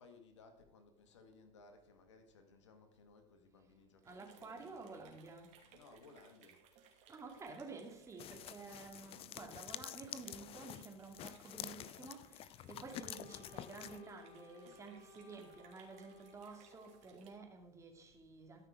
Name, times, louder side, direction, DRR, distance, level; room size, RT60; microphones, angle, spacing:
voice 1, 0.0-5.3 5.7-6.6, left 4 dB, 90° left, 1.7 m, -62 dB
voice 2, 4.0-5.6 7.1-18.7, right 4 dB, 20° right, 2.5 m, -52 dB
sound 1, 4.0-17.4, right 7 dB, 55° right, 2.6 m, -65 dB
sound 2, 8.2-14.0, left 12 dB, 40° left, 0.5 m, -49 dB
Wind instrument woodwind instrument, 12.9-17.5, left 7 dB, 60° left, 3.3 m, -61 dB
13.0 x 5.9 x 4.9 m
hypercardioid pair, 95°, 15 cm